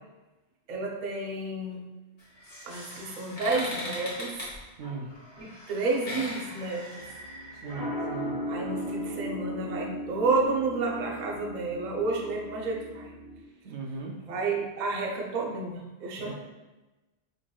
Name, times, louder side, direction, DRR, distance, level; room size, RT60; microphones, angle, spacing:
voice 1, 0.7-1.8 2.6-4.5 5.4-7.0 8.5-13.1 14.2-16.3, right 3 dB, 50° right, 0 dB, 0.6 m, -30 dB
sound 1, 2.2-7.8, left 1 dB, 45° left, 1.3 m, -40 dB
sound 2, 7.0-13.4, equal, 20° right, 1.0 m, -37 dB
voice 2, 7.6-8.3 13.6-14.1 16.2-16.3, right 4 dB, 85° right, 0 dB, 0.9 m, -38 dB
5.0 x 2.9 x 2.3 m, 1.1 s
omnidirectional pair, 1.1 m